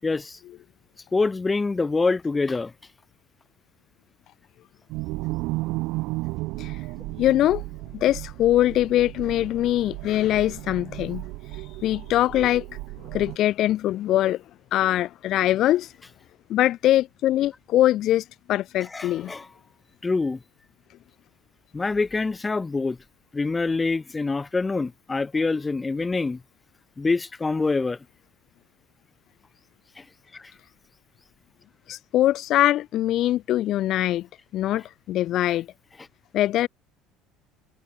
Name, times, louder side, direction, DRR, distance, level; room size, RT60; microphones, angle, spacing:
voice 1, 0.0-0.4 1.1-2.7 18.9-19.5 20.0-20.4 21.7-23.0 23.3-26.4 27.0-28.0 30.0-30.1 30.3-30.4, left 3 dB, 20° left, 2.9 m, -25 dB
sound 1, 4.9-13.4, right 22 dB, 60° right, 3.5 m, -34 dB
voice 2, 7.2-7.6 7.9-11.2 11.5-12.6 13.1-14.4 14.7-15.9 16.5-19.3 31.9-34.3 34.5-35.7 36.3-36.7, left 13 dB, 50° left, 1.3 m, -22 dB
figure-of-eight pair, 60°, 0 cm